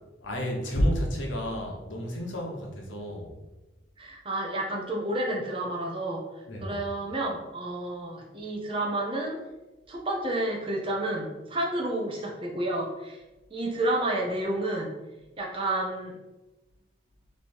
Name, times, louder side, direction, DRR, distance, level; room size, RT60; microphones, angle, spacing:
voice 1, 0.2-3.3 6.5-6.8, equal, 80° left, 0 dB, 0.9 m, -30 dB
voice 2, 4.0-6.2 6.6-9.4 9.9-13.2 13.5-14.9 15.4-16.2, right 1 dB, 25° right, -1 dB, 0.6 m, -30 dB
3.3 x 2.9 x 4.3 m, 1.1 s
head